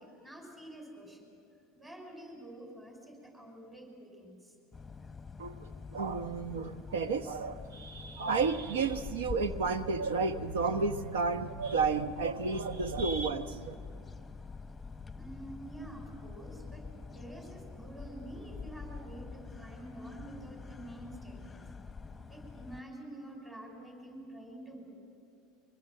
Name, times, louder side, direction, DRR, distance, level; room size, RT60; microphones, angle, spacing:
voice 1, 0.0-1.3 1.8-4.5 15.1-21.7 22.3-25.0, right 1 dB, 15° right, 2 dB, 5.8 m, -48 dB
sound 1, 4.7-22.8, left 4 dB, 10° left, 1.0 m, -46 dB
voice 2, 5.4-13.7, right 4 dB, 85° right, 10 dB, 1.1 m, -32 dB
24.0 x 23.5 x 7.7 m, 2.5 s
hypercardioid pair, 90°, 0 cm